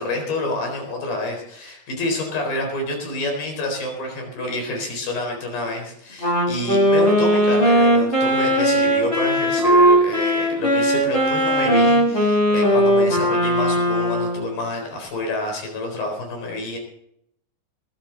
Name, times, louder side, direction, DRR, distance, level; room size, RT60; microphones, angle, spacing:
voice 1, 0.0-16.8, left 2 dB, 60° left, 2 dB, 5.8 m, -28 dB
Wind instrument woodwind instrument, 6.2-14.5, equal, 15° left, 4.4 m, -18 dB
21.0 x 12.5 x 4.0 m, 0.75 s
omnidirectional pair, 4.7 m